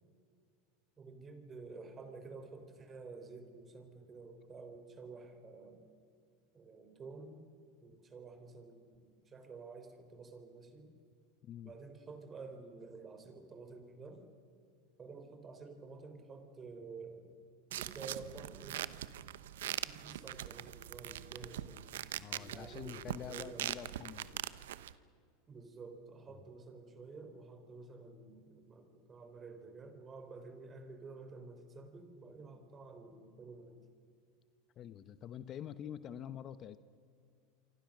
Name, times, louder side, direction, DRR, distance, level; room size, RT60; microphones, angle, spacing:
voice 1, 1.0-5.9 6.5-7.4 7.8-10.9 11.6-14.2 15.0-17.4 17.7-18.8 19.8-21.8 22.4-23.7 25.5-33.8, right 4 dB, 25° right, 7 dB, 4.0 m, -51 dB
voice 2, 11.4-11.7 22.2-24.5 34.8-36.8, left 10 dB, 40° left, 13 dB, 0.9 m, -46 dB
sound 1, 17.7-24.9, right 12 dB, 85° right, 0.9 m, -42 dB
28.0 x 25.0 x 6.6 m, 2.2 s
supercardioid pair, 125°, 0 cm